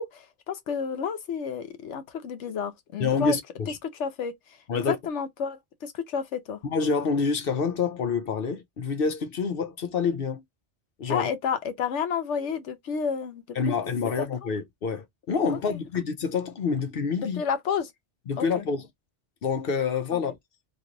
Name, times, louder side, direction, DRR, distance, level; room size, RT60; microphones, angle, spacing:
voice 1, 0.0-3.4 3.8-4.3 4.7-6.6 11.1-13.8 15.5-15.8 17.2-17.9 18.4-18.7 20.1-20.2, left 6 dB, 80° left, 1.0 m, -31 dB
voice 2, 3.0-3.7 4.7-5.0 6.6-10.4 11.0-11.3 13.6-17.4 18.3-18.9 19.4-20.4, left 5 dB, 60° left, 0.8 m, -27 dB
3.0 x 2.6 x 3.7 m
omnidirectional pair, 1.2 m